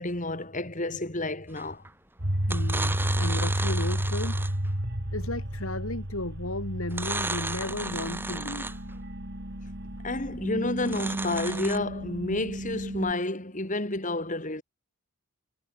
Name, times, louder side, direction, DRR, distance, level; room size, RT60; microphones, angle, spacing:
voice 1, 0.0-1.8 10.0-14.6, left 2 dB, 35° left, 3.5 m, -30 dB
sound 1, 1.6-1.9 2.4-4.7 6.9-8.9 10.8-11.8, right 2 dB, 10° right, 4.6 m, -34 dB
sound 2, 2.2-13.1, equal, 50° right, 3.9 m, -32 dB
voice 2, 2.5-4.5 5.1-8.7, left 1 dB, 70° left, 3.9 m, -34 dB
head